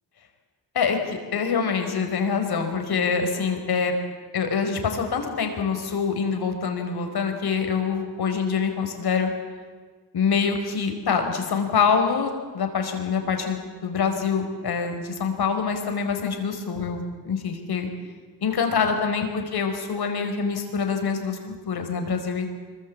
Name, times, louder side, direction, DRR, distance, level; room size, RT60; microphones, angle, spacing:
voice 1, 0.7-4.0 4.3-9.3 10.1-17.9 18.4-22.6, left 5 dB, 60° left, 6 dB, 4.7 m, -25 dB
25.5 x 23.0 x 8.5 m, 1.5 s
cardioid pair, 125°, 43 cm